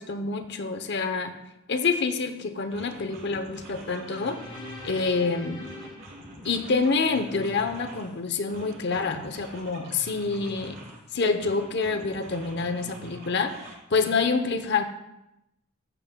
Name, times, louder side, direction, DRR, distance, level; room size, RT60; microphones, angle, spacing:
voice 1, 0.0-1.3 1.7-4.4 4.8-5.7 6.4-10.8 11.1-13.5 13.9-14.8, left 4 dB, 50° left, 8 dB, 0.8 m, -27 dB
sound 1, 2.1-2.3 2.7-5.2 5.6-8.1 8.5-11.0 11.4-13.7, right 1 dB, 60° right, 3.5 m, -45 dB
sound 2, 3.7-7.1, left 2 dB, 25° left, 2.2 m, -44 dB
14.5 x 9.0 x 2.3 m, 0.87 s
head